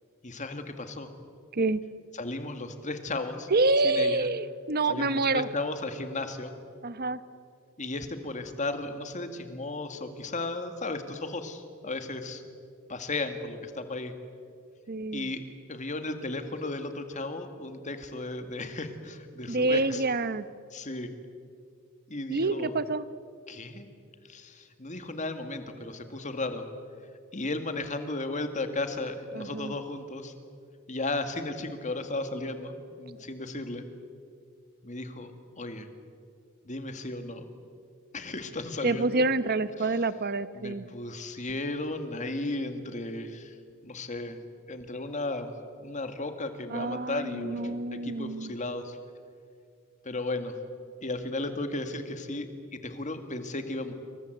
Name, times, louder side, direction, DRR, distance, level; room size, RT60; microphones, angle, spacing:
voice 1, 0.2-1.1 2.1-3.5 3.8-4.3 4.9-6.5 7.8-12.4 12.9-14.1 15.1-15.4 15.7-20.0 20.7-21.1 22.1-22.7 23.5-23.9 24.3-26.6 27.3-30.3 30.9-33.9 34.8-35.9 36.6-37.4 38.1-39.3 39.8-39.9 40.5-43.5 43.8-44.4 44.7-45.5 45.8-49.0 50.0-50.6 51.0-52.5 52.7-53.9, left 2 dB, 35° left, 8 dB, 2.2 m, -35 dB
voice 2, 3.5-5.5 6.8-7.2 14.9-15.3 19.5-20.4 22.3-23.0 29.3-29.7 38.8-40.9 46.7-48.5, right 2 dB, 45° right, 14 dB, 1.0 m, -27 dB
28.0 x 23.5 x 8.0 m, 2.3 s
head